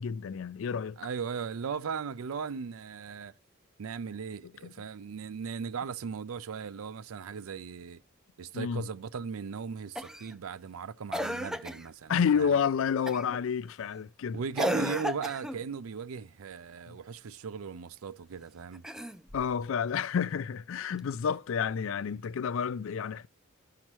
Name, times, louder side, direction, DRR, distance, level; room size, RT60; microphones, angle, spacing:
voice 1, 0.0-1.0 4.6-4.7 8.5-8.9 12.1-14.4 16.9-17.0 19.3-23.3, left 7 dB, 70° left, 0.4 m, -30 dB
voice 2, 1.0-3.3 3.8-8.0 8.4-12.5 14.3-18.9, right 6 dB, 85° right, 0.4 m, -38 dB
Cough, 10.0-10.3 11.1-11.9 13.1-13.4 14.6-15.6 18.7-19.5 21.0-21.1, equal, 5° right, 0.4 m, -33 dB
13.5 x 5.8 x 3.0 m
head